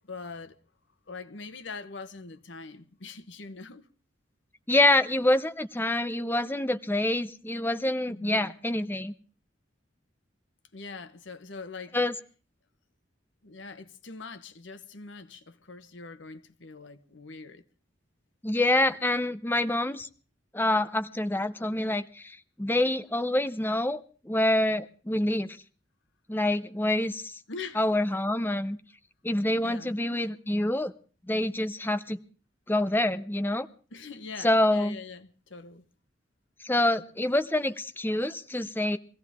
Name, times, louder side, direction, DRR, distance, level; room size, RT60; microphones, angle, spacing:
voice 1, 0.1-0.6 1.1-3.9 8.1-8.5 10.7-12.0 13.4-17.6 27.5-27.8 29.6-29.9 33.9-35.8 38.8-38.9, left 4 dB, 80° left, 1.2 m, -43 dB
voice 2, 4.7-9.1 11.9-12.1 18.4-20.1 20.5-25.5 26.3-27.4 27.8-28.8 29.2-30.9 31.3-32.2 32.7-33.7 34.4-35.0 36.6-39.0, left 1 dB, 10° left, 0.7 m, -26 dB
23.5 x 16.0 x 3.6 m
head